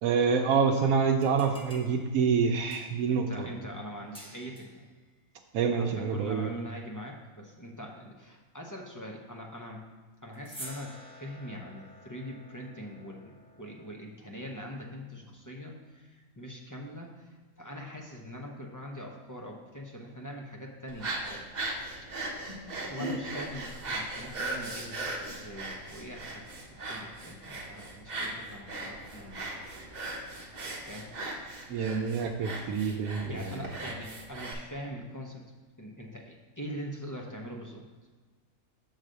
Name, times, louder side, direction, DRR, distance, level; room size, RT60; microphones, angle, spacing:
voice 1, 0.0-3.5 5.5-6.5 31.7-33.6, right 6 dB, 80° right, 1 dB, 1.0 m, -27 dB
sound 1, 1.1-3.1 4.1-4.9 10.3-13.9, equal, 5° left, 0.8 m, -50 dB
voice 2, 3.1-4.9 5.7-9.8 10.2-21.5 22.8-29.5 30.8-31.2 33.2-35.4 35.8-37.8, equal, 25° left, 0 dB, 0.4 m, -43 dB
sound 2, 20.9-34.5, right 2 dB, 35° right, 0.9 m, -38 dB
6.5 x 4.0 x 6.3 m, 1.4 s
omnidirectional pair, 1.5 m